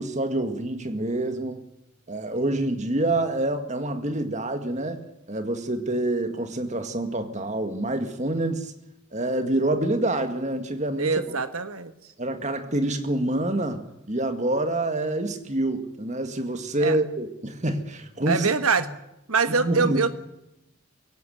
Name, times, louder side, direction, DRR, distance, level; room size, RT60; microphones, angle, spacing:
voice 1, 0.0-1.6 2.1-8.7 9.1-11.4 12.2-18.5 19.6-20.1, right 1 dB, 35° right, 2.0 m, -27 dB
voice 2, 11.0-11.9 16.8-17.0 18.3-18.9 19.3-20.1, right 4 dB, 85° right, 1.5 m, -24 dB
23.0 x 17.0 x 9.4 m
head